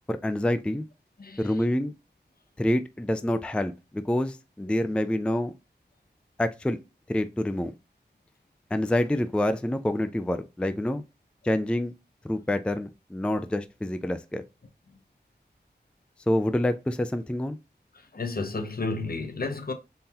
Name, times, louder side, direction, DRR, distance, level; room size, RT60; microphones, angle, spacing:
voice 1, 0.1-0.9 1.4-1.9 2.6-5.5 6.4-6.8 7.1-7.7 8.7-11.0 11.4-11.9 12.2-14.4 16.3-17.6, left 1 dB, 5° left, 0.3 m, -27 dB
voice 2, 1.2-1.6 14.9-15.0 17.9-19.7, left 3 dB, 60° left, 0.7 m, -32 dB
3.8 x 2.7 x 2.7 m
wide cardioid pair, 45°, 18 cm